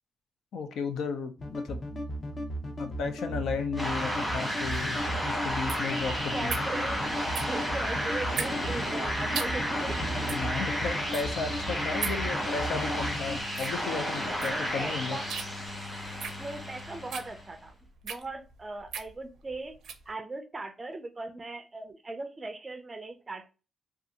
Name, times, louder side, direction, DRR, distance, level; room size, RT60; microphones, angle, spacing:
voice 1, 0.5-1.8 2.8-6.6 10.2-15.2, left 5 dB, 85° left, 8 dB, 0.5 m, -34 dB
sound 1, 1.4-13.4, equal, 30° left, 0.5 m, -36 dB
sound 2, 3.8-17.5, equal, 5° left, 1.2 m, -32 dB
sound 3, 4.7-20.1, right 7 dB, 80° right, 0.4 m, -40 dB
voice 2, 6.0-7.0 7.3-10.0 14.4-15.3 16.4-17.8 18.0-19.8 20.1-23.5, right 2 dB, 25° right, 7 dB, 0.4 m, -39 dB
2.6 x 2.4 x 2.7 m, 0.33 s
cardioid pair, 120°, 0 cm